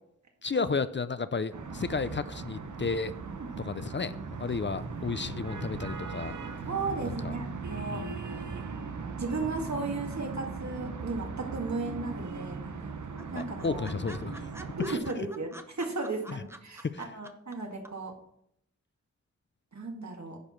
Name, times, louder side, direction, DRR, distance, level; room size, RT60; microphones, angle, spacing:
voice 1, 0.4-3.2 3.6-6.4 7.2-7.3 7.9-8.2 13.3-14.5 14.9-15.0 16.3-16.4 16.8-17.1, left 4 dB, 40° left, 13 dB, 0.5 m, -33 dB
sound 1, 1.5-15.0, right 4 dB, 90° right, 0.9 m, -38 dB
voice 2, 6.6-8.0 9.1-12.6 13.3-13.9 14.8-18.2 19.7-20.4, right 3 dB, 70° right, 2 dB, 1.9 m, -35 dB
sound 2, 11.5-12.1 12.4-12.5 12.8-12.9 13.2-17.5 17.8-17.9, right 1 dB, 10° right, 0.8 m, -47 dB
10.0 x 4.7 x 5.8 m, 0.72 s
wide cardioid pair, 65°, 29 cm